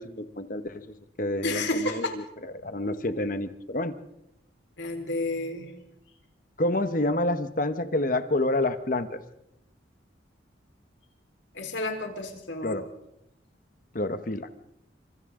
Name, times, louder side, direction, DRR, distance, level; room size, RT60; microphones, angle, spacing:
voice 1, 0.0-2.2 2.5-3.9 6.6-9.2 12.6-12.9 13.9-14.5, left 1 dB, 45° left, 10 dB, 1.1 m, -28 dB
voice 2, 1.4-2.2 4.8-5.7 11.5-12.8, left 2 dB, 80° left, 4 dB, 4.2 m, -31 dB
28.5 x 26.0 x 3.8 m, 0.83 s
head